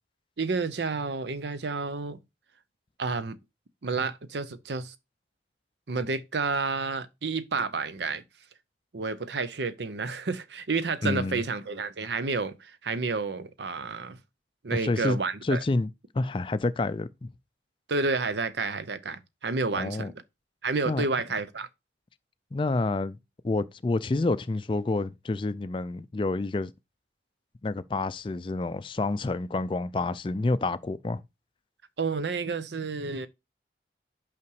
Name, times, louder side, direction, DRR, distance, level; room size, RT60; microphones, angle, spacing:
voice 1, 0.4-2.2 3.0-3.4 3.8-4.9 5.9-8.2 8.9-14.2 14.6-15.6 17.9-20.1 20.6-21.7 32.0-33.3, right 4 dB, 75° right, 0.7 m, -30 dB
voice 2, 11.0-11.4 14.7-15.2 15.4-15.9 16.1-17.3 19.7-20.1 20.9-21.0 22.5-23.2 23.4-26.7 27.6-31.2, left 2 dB, 30° left, 0.3 m, -28 dB
5.8 x 5.0 x 4.7 m
head